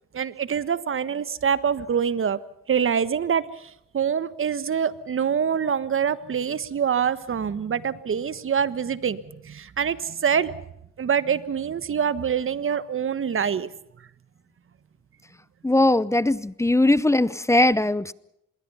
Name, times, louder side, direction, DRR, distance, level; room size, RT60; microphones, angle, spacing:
voice 1, 0.1-2.4 2.7-10.6 11.0-13.7, right 7 dB, 45° right, 15 dB, 1.4 m, -25 dB
voice 2, 15.6-18.1, left 2 dB, 10° left, 19 dB, 0.7 m, -20 dB
26.0 x 22.0 x 5.6 m, 0.78 s
cardioid pair, 90°, 30 cm